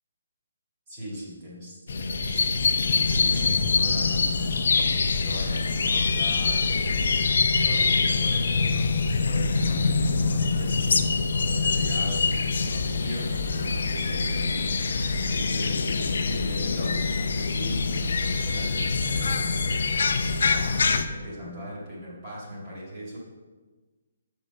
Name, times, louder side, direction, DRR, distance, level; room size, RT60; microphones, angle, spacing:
voice 1, 0.9-4.5 4.9-9.0 9.2-10.9 11.3-23.2, equal, 20° right, -7 dB, 2.6 m, -39 dB
sound 1, 1.9-21.0, left 4 dB, 60° left, 0.6 m, -24 dB
6.6 x 5.4 x 6.4 m, 1.3 s
hypercardioid pair, 175°, 0 cm